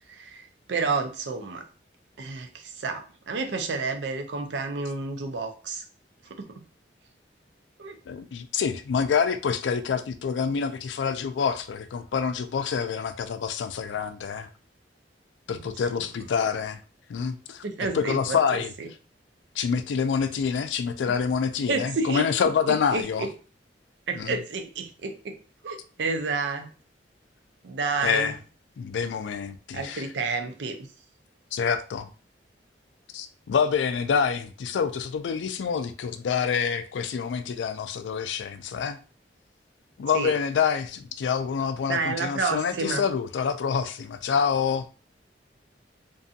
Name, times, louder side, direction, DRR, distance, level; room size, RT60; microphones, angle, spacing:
voice 1, 0.1-1.6 2.2-5.8 6.3-6.6 7.8-8.0 15.5-15.7 17.6-18.9 21.7-22.3 22.7-23.3 24.1-25.4 25.6-26.7 27.6-28.3 29.7-30.9 40.1-40.3 41.9-43.0, right 4 dB, 75° right, 0.5 m, -30 dB
voice 2, 8.1-14.5 15.5-16.8 17.1-17.6 17.9-18.7 19.6-23.3 24.1-24.4 28.0-28.4 28.8-30.1 31.5-32.1 33.1-39.0 40.0-44.9, left 6 dB, 80° left, 0.3 m, -27 dB
2.6 x 2.4 x 2.6 m
head